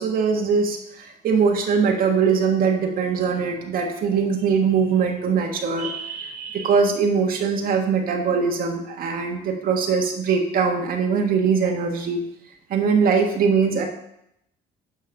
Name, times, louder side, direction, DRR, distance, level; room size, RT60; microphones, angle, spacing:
voice 1, 0.0-12.2 12.7-13.8, right 5 dB, 60° right, 2 dB, 1.7 m, -22 dB
11.5 x 4.6 x 5.3 m, 0.77 s
cardioid pair, 110°, 17 cm